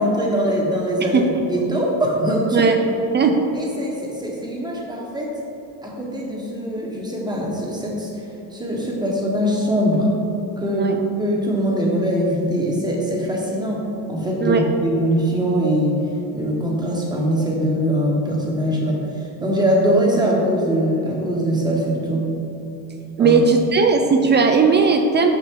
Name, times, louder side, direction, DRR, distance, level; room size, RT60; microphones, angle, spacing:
voice 1, 0.0-2.7 3.5-5.3 5.8-8.2 8.5-10.1 10.6-13.8 14.1-16.0 16.3-19.1 19.4-22.3 23.2-23.4, equal, 10° right, -2 dB, 1.2 m, -22 dB
voice 2, 23.2-25.3, right 4 dB, 30° right, 4 dB, 0.4 m, -17 dB
5.6 x 5.6 x 3.7 m, 2.9 s
cardioid pair, 110°, 38 cm